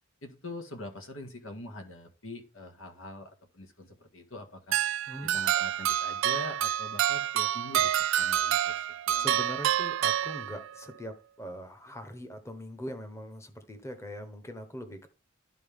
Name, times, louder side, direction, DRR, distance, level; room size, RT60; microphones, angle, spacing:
voice 1, 0.2-4.8 5.2-9.3, left 2 dB, 90° left, 4 dB, 1.8 m, -44 dB
sound 1, 4.7-10.9, right 11 dB, 75° right, 0.3 m, -28 dB
voice 2, 5.1-5.4 9.2-15.1, equal, 15° left, 7 dB, 1.0 m, -41 dB
12.0 x 4.2 x 3.6 m, 0.35 s
head